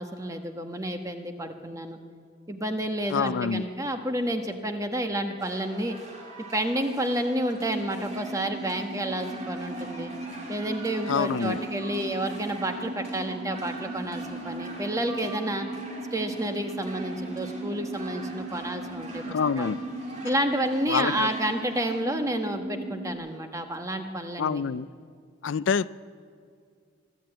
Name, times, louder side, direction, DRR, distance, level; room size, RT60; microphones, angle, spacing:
voice 1, 0.0-2.0 2.5-6.0 6.5-10.1 10.5-15.7 16.1-19.7 20.2-24.6, right 1 dB, 15° right, 1.2 m, -30 dB
voice 2, 3.1-3.7 11.1-11.6 19.3-19.8 20.9-21.3 24.4-24.9 25.4-25.9, left 6 dB, 85° left, 0.4 m, -26 dB
sound 1, 5.4-22.0, right 2 dB, 40° right, 3.4 m, -44 dB
sound 2, 7.4-23.1, right 2 dB, 60° right, 2.3 m, -37 dB
23.0 x 12.5 x 8.9 m
head